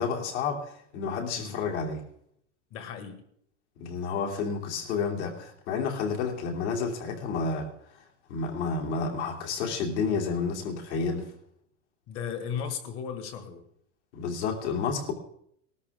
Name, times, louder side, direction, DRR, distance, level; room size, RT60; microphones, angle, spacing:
voice 1, 0.0-2.0 3.8-7.7 8.3-11.3 14.1-15.1, left 5 dB, 60° left, 1 dB, 3.1 m, -30 dB
voice 2, 2.7-3.3 12.1-13.6, left 7 dB, 35° left, 8 dB, 1.8 m, -36 dB
20.0 x 13.0 x 3.6 m, 0.71 s
supercardioid pair, 160°, 38 cm